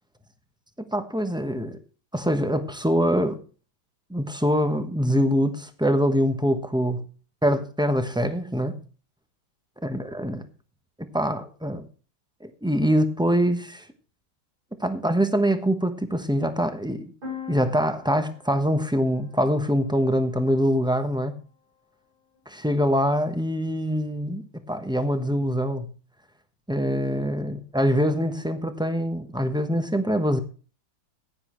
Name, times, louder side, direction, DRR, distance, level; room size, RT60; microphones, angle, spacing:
voice 1, 0.9-1.8 2.1-3.4 4.1-7.0 7.4-8.8 9.8-10.4 11.0-11.9 12.4-13.9 14.8-17.1 17.5-21.4 22.5-25.9 26.7-30.4, equal, 5° right, 0.6 m, -24 dB
sound 1, 17.2-21.0, left 6 dB, 85° right, 8.2 m, -43 dB
15.5 x 10.5 x 3.2 m
omnidirectional pair, 2.2 m